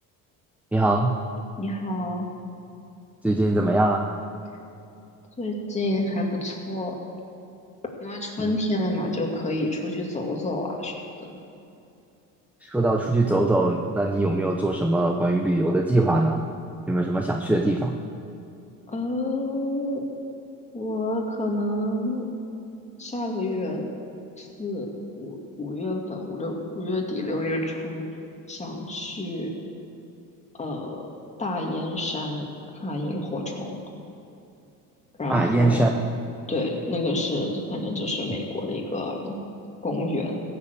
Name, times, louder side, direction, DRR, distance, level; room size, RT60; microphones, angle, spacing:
voice 1, 0.7-1.2 3.2-4.1 8.4-8.5 12.6-16.4 16.9-17.9 35.3-35.9, right 2 dB, 5° right, 3 dB, 0.7 m, -22 dB
voice 2, 1.6-2.3 5.4-7.0 8.0-10.9 11.2-11.3 18.9-20.0 20.7-22.2 23.0-23.8 24.4-28.0 28.5-29.5 30.6-31.1 31.4-32.5 32.7-33.8 35.2-35.8 36.5-39.4 39.8-40.4, left 1 dB, 20° left, 0 dB, 2.3 m, -29 dB
15.5 x 7.0 x 8.1 m, 2.7 s
cardioid pair, 110°, 36 cm